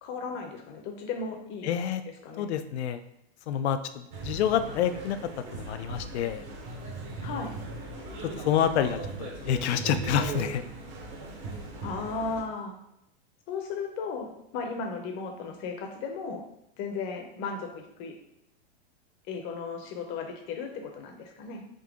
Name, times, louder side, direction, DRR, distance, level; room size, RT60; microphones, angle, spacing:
voice 1, 0.0-1.7 2.2-2.5 7.2-7.5 11.8-12.8 13.5-16.4 16.8-18.1 19.3-21.6, left 4 dB, 35° left, 3 dB, 0.7 m, -35 dB
voice 2, 1.6-2.0 2.4-3.0 3.5-5.2 5.5-6.4 8.2-10.6, left 9 dB, 85° left, 11 dB, 0.5 m, -28 dB
sound 1, 4.1-12.4, right 3 dB, 45° right, 1.0 m, -38 dB
3.8 x 2.7 x 3.5 m, 0.81 s
supercardioid pair, 145°, 33 cm